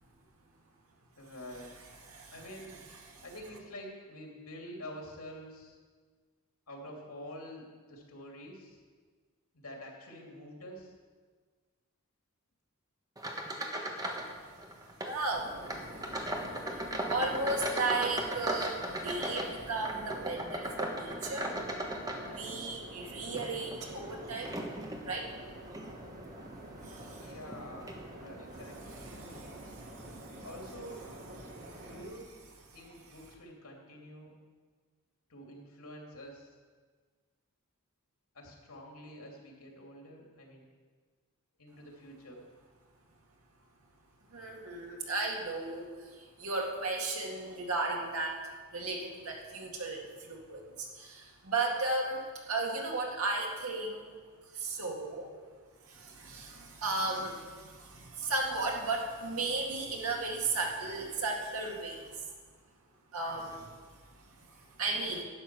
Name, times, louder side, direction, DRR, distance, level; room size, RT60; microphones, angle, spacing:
voice 1, 1.2-1.7 2.3-2.8 3.2-5.8 6.7-8.8 9.5-10.9 27.2-29.5 30.4-31.0 31.8-32.3 32.7-34.3 35.3-36.5 38.3-40.6 41.6-42.4, equal, 90° left, 0 dB, 2.7 m, -47 dB
voice 2, 2.0-2.4 2.7-3.2 14.2-14.4 15.1-21.6 22.2-24.5 25.0-25.3 26.8-27.3 28.9-30.5 31.4-31.9 44.3-48.4 48.7-54.2 54.5-55.3 55.8-62.3 63.1-65.2, right 3 dB, 85° right, 0 dB, 2.1 m, -36 dB
sound 1, 13.2-14.3 14.6-15.2 15.6-22.7 23.2-25.1 25.7-25.9 26.5-26.6 27.5-27.6 27.9-28.0, right 1 dB, 15° right, 1.2 m, -37 dB
sound 2, 15.3-32.0, right 1 dB, 45° right, 2.2 m, -47 dB
11.5 x 8.5 x 6.0 m, 1.5 s
head